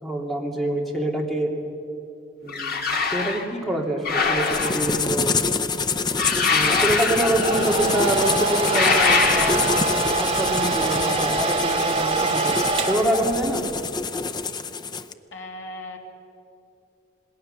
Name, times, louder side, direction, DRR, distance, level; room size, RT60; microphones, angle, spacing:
voice 1, 0.0-1.5 2.4-2.8 3.1-5.3 6.5-9.7 10.1-13.7, right 1 dB, ahead, -1 dB, 2.6 m, -26 dB
sound 1, 2.5-3.4 4.0-5.1 6.2-7.8 8.6-9.9, left 4 dB, 50° left, 1.9 m, -23 dB
sound 2, 4.4-15.1, left 4 dB, 20° left, 0.6 m, -27 dB
Domestic sounds home sounds, 7.0-13.7, right 3 dB, 30° right, 2.2 m, -24 dB
voice 2, 15.3-16.0, left 1 dB, 70° left, 1 dB, 2.8 m, -37 dB
27.0 x 20.0 x 6.8 m, 2.7 s
head